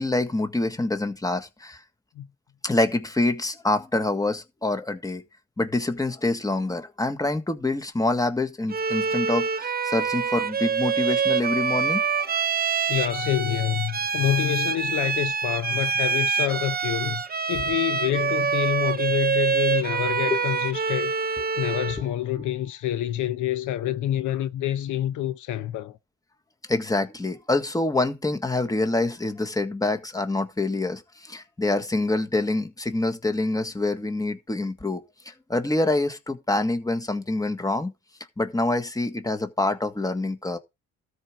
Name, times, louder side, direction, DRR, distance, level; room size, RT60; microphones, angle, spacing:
voice 1, 0.0-1.8 2.6-5.2 5.6-12.4 20.3-20.4 21.4-21.5 22.3-22.4 26.7-37.9 38.4-40.6, left 2 dB, 10° left, 1.6 m, -26 dB
Bowed string instrument, 8.7-22.1, right 6 dB, 30° right, 0.9 m, -26 dB
voice 2, 12.9-17.2 17.5-26.0, left 12 dB, 80° left, 0.8 m, -27 dB
13.0 x 4.8 x 6.4 m
cardioid pair, 90°, 30 cm